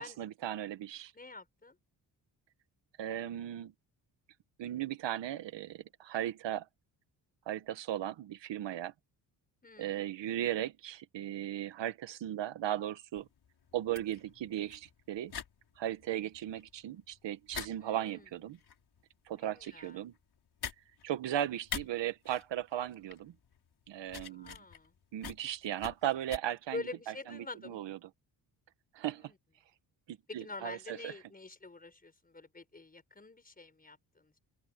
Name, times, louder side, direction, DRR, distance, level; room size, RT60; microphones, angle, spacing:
voice 1, 0.0-1.1 3.0-3.7 4.6-6.7 7.5-8.9 9.8-13.3 13.7-15.3 15.8-18.6 19.3-20.1 21.0-23.3 23.9-24.6 25.1-26.8 27.3-28.0 28.9-29.3 30.1-31.1, right 12 dB, 85° right, 1.8 m, -37 dB
voice 2, 1.1-1.8 9.6-10.0 17.8-18.3 19.4-20.0 24.3-24.9 26.7-27.8 29.0-29.4 30.3-34.4, left 3 dB, 20° left, 5.0 m, -46 dB
sound 1, 13.2-26.4, left 7 dB, 65° left, 6.2 m, -46 dB
open air
cardioid pair, 95°, 42 cm